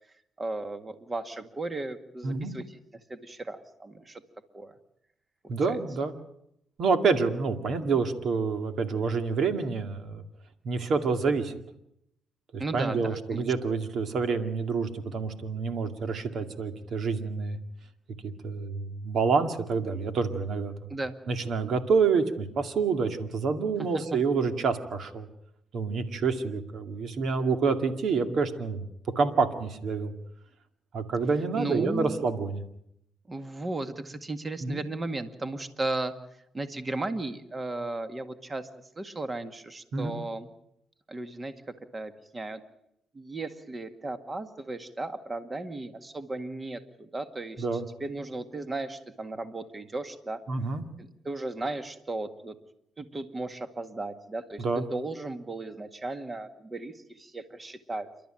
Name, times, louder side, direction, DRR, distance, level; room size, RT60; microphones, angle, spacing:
voice 1, 0.4-2.8 3.1-4.2 4.5-4.7 5.4-5.8 12.6-13.4 20.9-21.2 23.8-23.9 31.5-32.2 33.3-36.1 36.5-38.7 39.0-40.5 41.1-41.5 41.9-42.6 43.1-47.7 48.0-50.4 51.0-52.6 53.0-58.1, right 2 dB, 25° right, 9 dB, 1.9 m, -35 dB
voice 2, 5.5-6.1 6.8-10.2 10.6-11.5 12.5-17.6 18.2-20.9 21.3-25.3 25.7-28.8 29.2-30.1 30.9-32.6 34.6-34.8 39.9-40.2 47.6-47.8 50.5-50.8 54.6-54.8, right 4 dB, 60° right, 8 dB, 2.2 m, -28 dB
28.5 x 12.5 x 9.0 m, 0.77 s
cardioid pair, 90°, 0 cm